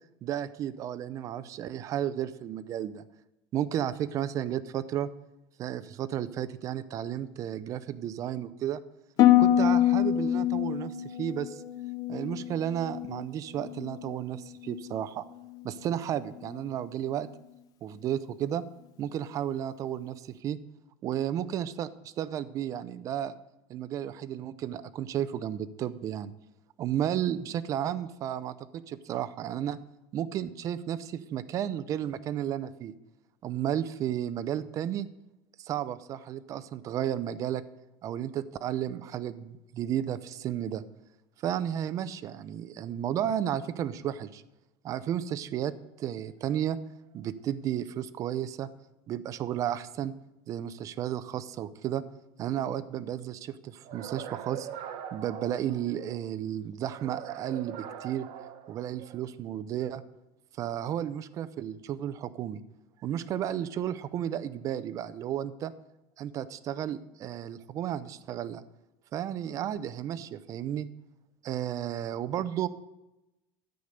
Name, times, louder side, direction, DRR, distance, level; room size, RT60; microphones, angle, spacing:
voice 1, 0.2-3.0 3.5-5.1 5.6-8.8 9.4-11.6 12.1-15.3 15.6-17.3 17.8-18.6 19.0-20.6 21.0-23.4 23.7-26.3 26.8-29.8 30.1-32.9 33.4-35.1 35.6-37.6 38.0-40.8 41.4-44.4 44.8-45.7 46.0-46.8 47.1-48.7 49.1-50.1 50.5-52.0 52.4-54.7 55.1-58.3 58.7-60.0 60.6-62.6 63.0-65.7 66.2-68.6 69.1-70.9 71.4-72.7, right 10 dB, 30° right, 13 dB, 0.6 m, -33 dB
Harp, 9.2-13.3 13.6-14.1 14.6-15.0, left 12 dB, 35° left, 0.6 m, -25 dB
sound 1, 53.8-56.3 56.9-59.3, right 9 dB, 50° right, 1.2 m, -42 dB
13.0 x 8.3 x 6.5 m, 0.93 s
cardioid pair, 170°, 11 cm